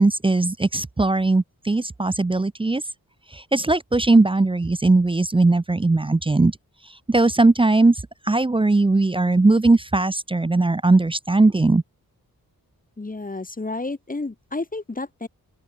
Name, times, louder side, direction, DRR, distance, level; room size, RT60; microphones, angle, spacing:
voice 1, 0.0-2.8 3.3-6.6 7.1-7.9 8.2-11.8, right 2 dB, 15° right, 0.5 m, -19 dB
voice 2, 13.0-15.3, left 3 dB, 25° left, 2.3 m, -31 dB
open air
wide cardioid pair, 140°, 36 cm